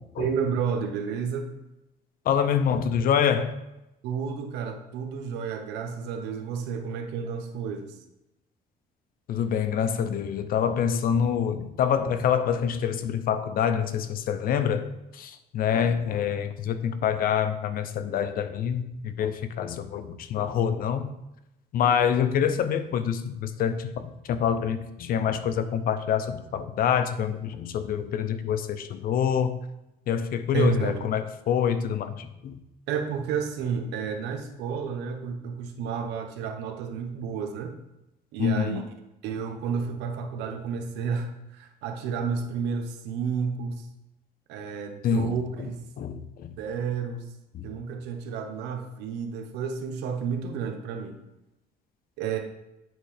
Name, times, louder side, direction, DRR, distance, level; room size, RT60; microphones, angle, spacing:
voice 1, 0.2-1.5 4.0-8.0 30.5-31.0 32.9-37.7 38.3-38.8 39.2-43.9 44.5-45.9 46.6-47.3 47.6-51.2 52.2-52.4, right 6 dB, 90° right, 5 dB, 0.9 m, -31 dB
voice 2, 2.2-3.6 9.3-21.1 21.7-29.6 30.1-32.6 38.4-38.8 45.0-45.7 46.0-46.5 47.5-47.7, left 8 dB, 60° left, 11 dB, 0.6 m, -26 dB
9.1 x 3.2 x 4.9 m, 0.93 s
cardioid pair, 110°, 17 cm